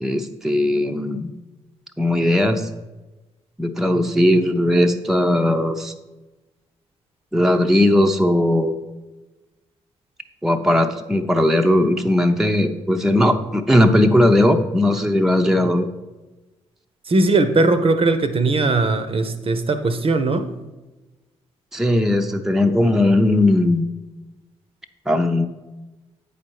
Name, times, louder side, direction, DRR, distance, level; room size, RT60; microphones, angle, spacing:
voice 1, 0.0-1.3 2.0-2.7 3.6-5.9 7.3-8.7 10.4-15.9 21.7-23.9 25.1-25.5, left 1 dB, 5° right, 0.6 m, -18 dB
voice 2, 17.1-20.5, right 3 dB, 40° right, 0.7 m, -19 dB
8.5 x 5.0 x 4.6 m
figure-of-eight pair, 40°, 15 cm